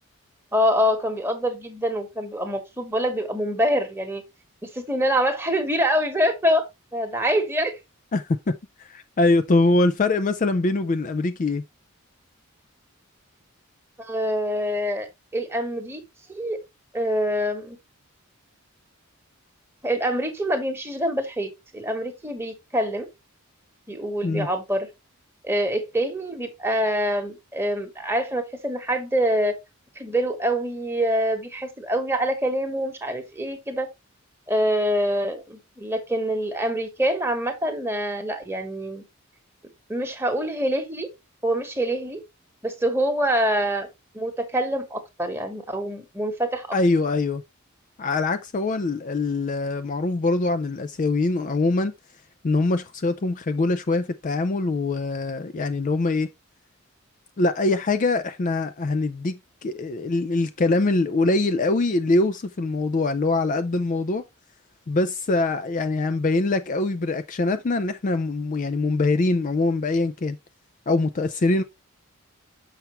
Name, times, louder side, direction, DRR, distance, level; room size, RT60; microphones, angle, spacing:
voice 1, 0.5-4.2 4.6-6.6 6.9-7.7 14.0-15.1 15.3-16.0 16.3-16.6 16.9-17.8 19.8-23.1 23.9-24.9 25.4-29.6 30.0-33.9 34.5-39.0 39.9-41.1 41.4-42.2 42.6-43.9 44.1-46.8, equal, 10° right, 1.2 m, -25 dB
voice 2, 8.1-11.6 24.2-24.5 46.7-47.4 48.0-51.9 52.4-56.3 57.4-64.2 64.9-70.4 70.9-71.6, left 2 dB, 35° left, 0.4 m, -23 dB
7.1 x 5.8 x 3.0 m
head